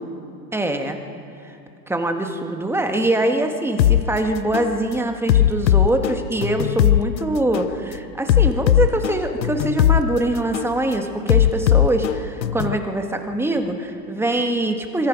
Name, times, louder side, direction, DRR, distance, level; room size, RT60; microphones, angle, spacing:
voice 1, 0.5-1.0 1.4-1.5 1.9-15.1, right 1 dB, 5° right, 5 dB, 1.5 m, -23 dB
sound 1, 3.8-4.0 4.5-4.7 5.3-7.0 7.5-7.7 8.3-10.0 10.5-10.7 11.3-12.8, left 12 dB, 85° left, 0.8 m, -17 dB
25.5 x 21.5 x 5.2 m, 2.7 s
hypercardioid pair, 120°, 50 cm